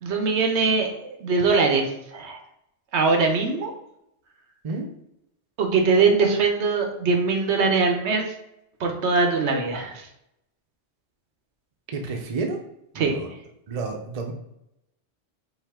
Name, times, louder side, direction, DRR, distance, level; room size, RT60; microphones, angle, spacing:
voice 1, 0.0-2.4 2.9-3.7 5.6-8.2 8.8-10.1 13.0-13.2, right 4 dB, 80° right, 3 dB, 1.1 m, -22 dB
voice 2, 11.9-12.6 12.9-13.3 13.7-14.3, right 3 dB, 40° right, 2 dB, 0.7 m, -30 dB
5.6 x 2.7 x 3.6 m, 0.82 s
omnidirectional pair, 1.1 m